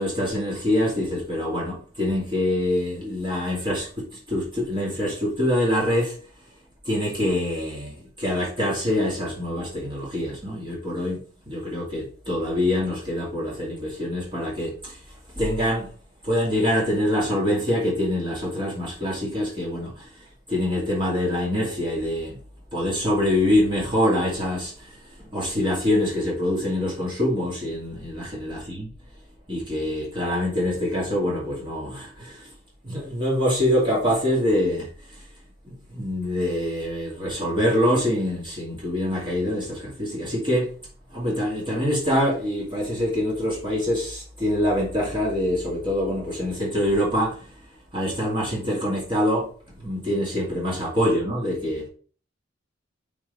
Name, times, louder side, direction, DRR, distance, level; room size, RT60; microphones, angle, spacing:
voice 1, 0.0-6.2 6.8-11.2 11.5-15.0 15.4-15.9 16.2-20.1 20.5-22.4 22.7-28.9 29.5-32.5 32.8-35.3 35.7-40.7 41.1-47.6 47.9-51.8, left 1 dB, 25° right, -5 dB, 2.3 m, -25 dB
5.9 x 3.9 x 5.4 m, 0.42 s
head